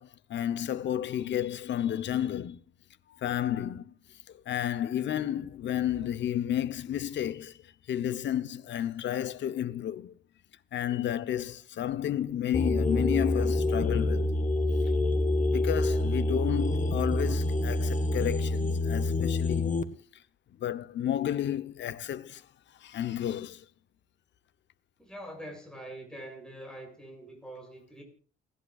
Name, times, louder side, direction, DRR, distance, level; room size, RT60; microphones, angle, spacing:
voice 1, 0.0-2.6 3.1-3.9 4.5-7.6 7.9-10.1 10.7-14.4 15.5-19.8 20.6-22.4 22.8-23.6, left 11 dB, 65° left, 0.9 m, -31 dB
sound 1, 12.5-19.8, left 2 dB, 40° left, 1.5 m, -27 dB
voice 2, 25.0-28.0, right 1 dB, 5° left, 6.9 m, -44 dB
29.0 x 11.0 x 2.4 m
cardioid pair, 90°, 20 cm